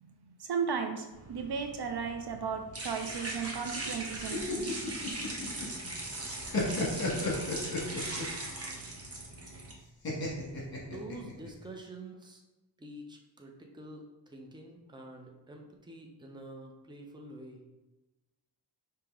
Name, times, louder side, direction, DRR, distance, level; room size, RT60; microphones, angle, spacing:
voice 1, 0.4-4.9, right 6 dB, 60° right, 5 dB, 0.5 m, -35 dB
sound 1, 1.1-9.7, right 2 dB, 30° right, 0.9 m, -40 dB
sound 2, 4.1-5.9 6.2-8.4 10.0-11.5, left 3 dB, 50° left, 1.3 m, -33 dB
voice 2, 10.8-12.4 12.8-17.6, right 1 dB, 10° right, 1 dB, 0.6 m, -47 dB
5.2 x 2.9 x 3.5 m, 1.1 s
wide cardioid pair, 125°, 45 cm